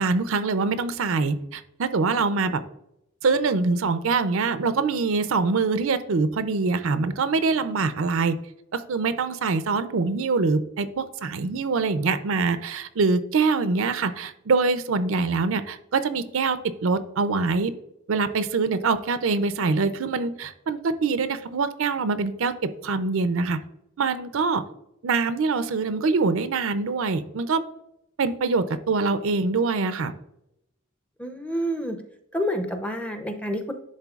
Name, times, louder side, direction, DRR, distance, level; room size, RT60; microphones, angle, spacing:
voice 1, 0.0-2.6 3.2-8.4 8.7-17.7 18.1-23.6 24.0-24.6 25.0-27.6 28.2-30.1, right 4 dB, 75° right, 12 dB, 0.5 m, -24 dB
voice 2, 31.2-32.0 32.3-33.7, equal, 5° left, 6 dB, 0.5 m, -28 dB
10.5 x 3.7 x 2.4 m, 0.81 s
head